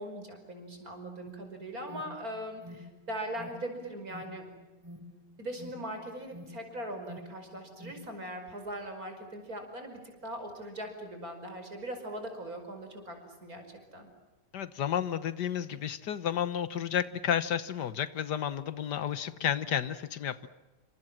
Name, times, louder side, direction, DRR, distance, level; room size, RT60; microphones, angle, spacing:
voice 1, 0.0-4.5 5.4-14.1, right 1 dB, 55° right, 6 dB, 5.7 m, -40 dB
Alarm, 1.3-8.0, left 1 dB, 10° right, 3.5 m, -50 dB
voice 2, 14.5-20.5, left 9 dB, 75° left, 14 dB, 1.7 m, -31 dB
28.0 x 26.0 x 7.5 m, 1.1 s
omnidirectional pair, 1.8 m